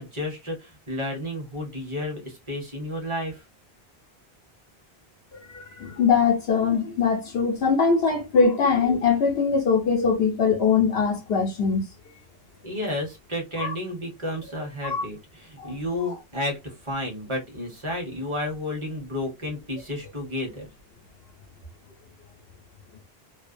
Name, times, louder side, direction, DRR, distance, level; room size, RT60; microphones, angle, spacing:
voice 1, 0.0-3.4 12.6-20.7, left 1 dB, 30° right, 1.0 m, -32 dB
voice 2, 5.3-11.9 13.6-13.7 14.8-15.0 15.6-15.7, left 5 dB, 75° left, 0.9 m, -22 dB
2.6 x 2.2 x 2.5 m
omnidirectional pair, 1.0 m